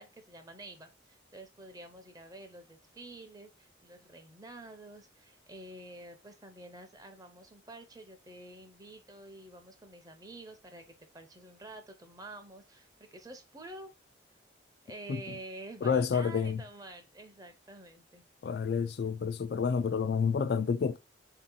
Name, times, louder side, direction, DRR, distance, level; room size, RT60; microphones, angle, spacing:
voice 1, 0.0-13.9 14.8-18.2, right 1 dB, 20° right, 0.6 m, -49 dB
voice 2, 15.8-16.6 18.4-21.0, left 6 dB, 55° left, 0.3 m, -29 dB
4.2 x 2.8 x 3.7 m
head